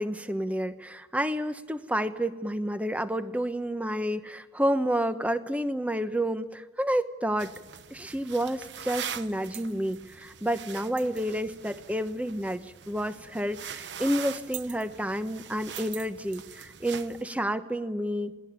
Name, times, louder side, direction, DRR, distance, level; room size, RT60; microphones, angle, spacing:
voice 1, 0.0-7.5 7.9-18.3, equal, 10° right, 10 dB, 1.0 m, -30 dB
sound 1, 7.4-17.2, right 8 dB, 85° right, 0.9 m, -42 dB
28.0 x 19.5 x 8.9 m, 1.3 s
head